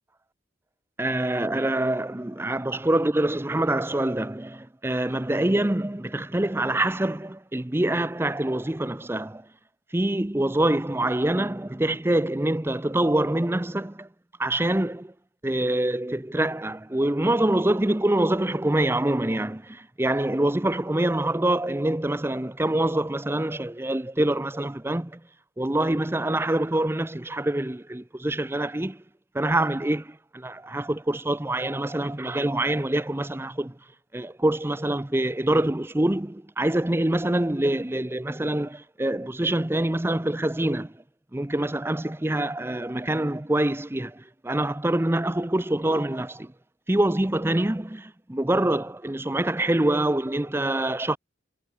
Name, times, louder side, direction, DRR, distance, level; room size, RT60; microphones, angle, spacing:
voice 1, 1.0-9.5 9.9-14.1 14.4-15.1 15.4-25.2 25.6-29.0 29.3-33.8 34.1-40.9 41.3-46.5 46.9-51.2, right 1 dB, 10° right, 0.6 m, -25 dB
head